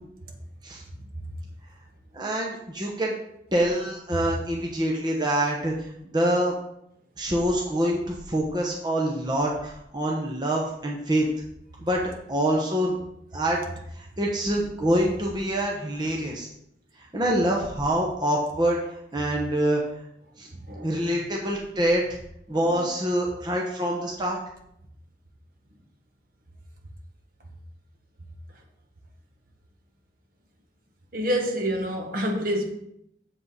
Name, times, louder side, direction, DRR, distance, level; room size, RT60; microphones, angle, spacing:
voice 1, 2.1-3.1 3.5-5.7 6.1-6.5 7.2-11.3 11.8-12.0 12.3-13.0 13.3-13.6 13.9-16.5 17.1-18.8 19.1-19.8 20.4-20.5 20.8-22.1 22.5-24.4, right 1 dB, 25° right, -2 dB, 1.0 m, -25 dB
voice 2, 20.7-21.0 22.5-22.9 31.1-32.7, equal, 50° right, 1 dB, 1.5 m, -28 dB
7.6 x 7.5 x 4.1 m, 0.77 s
head